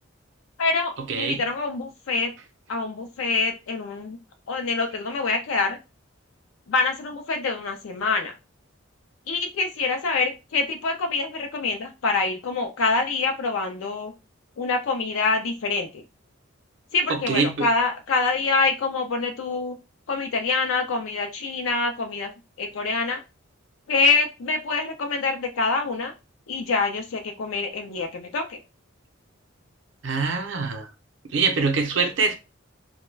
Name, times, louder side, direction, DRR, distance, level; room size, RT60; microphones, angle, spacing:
voice 1, 0.6-2.3 2.7-4.2 4.5-5.8 6.7-8.3 9.3-14.1 14.6-16.0 16.9-19.8 20.1-22.3 22.6-23.2 23.9-26.1 26.5-28.6, left 3 dB, 75° left, 0.4 m, -25 dB
voice 2, 17.1-17.7 30.0-30.9 31.3-32.4, right 4 dB, 60° right, 0.5 m, -24 dB
2.2 x 2.1 x 3.1 m
head